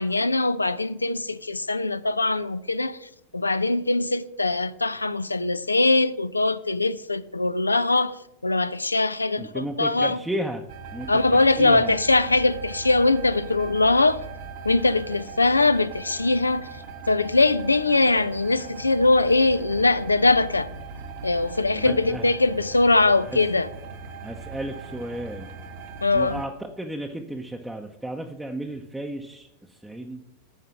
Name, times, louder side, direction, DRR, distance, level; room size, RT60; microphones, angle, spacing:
voice 1, 0.0-10.2 11.1-14.2 14.6-16.7 17.1-20.7 21.2-23.7 26.0-26.4, left 2 dB, 85° left, 0.4 m, -22 dB
voice 2, 9.4-10.6 10.9-12.0 21.7-22.3 23.3-23.4 24.2-25.5 26.1-30.2, right 1 dB, 5° right, 0.7 m, -33 dB
sound 1, 10.7-26.5, right 4 dB, 50° right, 1.1 m, -40 dB
9.4 x 4.9 x 5.8 m
figure-of-eight pair, 90°, 0 cm